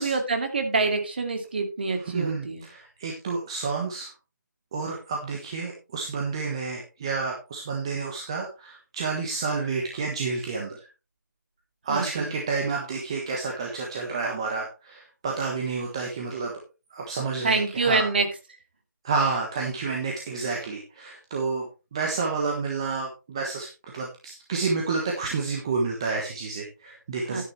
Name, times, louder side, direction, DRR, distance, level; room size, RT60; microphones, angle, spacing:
voice 1, 0.0-2.6 11.9-12.3 17.4-18.3 27.3-27.4, right 3 dB, 30° right, 5 dB, 2.4 m, -26 dB
voice 2, 1.9-4.1 4.7-10.9 11.8-16.5 16.9-18.1 19.0-27.4, right 4 dB, 15° right, 0 dB, 1.3 m, -30 dB
12.5 x 10.0 x 3.3 m, 0.29 s
figure-of-eight pair, 170°, 11 cm